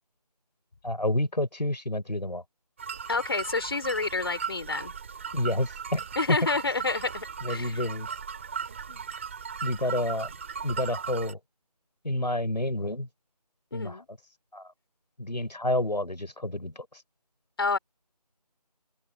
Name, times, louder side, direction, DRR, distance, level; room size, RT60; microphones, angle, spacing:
voice 1, 0.8-2.4 5.3-6.4 7.4-8.1 9.6-10.3 10.6-11.4 12.0-13.1 13.7-14.0 14.5-14.7 15.2-16.9, left 1 dB, 90° left, 6.6 m, -29 dB
sound 1, 2.8-11.3, right 6 dB, 20° right, 4.5 m, -37 dB
voice 2, 3.1-4.9 6.2-7.8 8.9-9.1 13.7-14.1 17.6-17.8, left 3 dB, 35° left, 6.1 m, -29 dB
open air
figure-of-eight pair, 170°, 21 cm